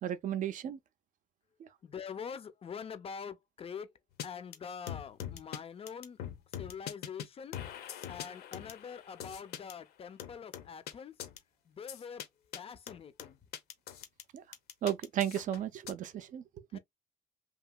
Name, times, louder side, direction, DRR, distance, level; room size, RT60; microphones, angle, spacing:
voice 1, 0.0-0.8 1.6-1.7 14.3-14.4 14.8-16.4 16.7-16.8, right 10 dB, 50° right, 0.5 m, -34 dB
voice 2, 1.8-3.9 4.2-6.2 6.6-7.6 8.1-11.2 11.6-12.3 12.5-13.4 16.7-16.8, left 7 dB, 35° left, 0.5 m, -44 dB
sound 1, 4.2-4.3 4.5-4.6 4.9-5.6 5.9-7.3 7.5-9.7 10.2-10.9 11.2-11.4 11.9-12.3 12.5-12.6 12.9-14.2 14.5-15.9, left 10 dB, 70° left, 0.8 m, -42 dB
2.9 x 2.7 x 2.2 m
cardioid pair, 110°, 17 cm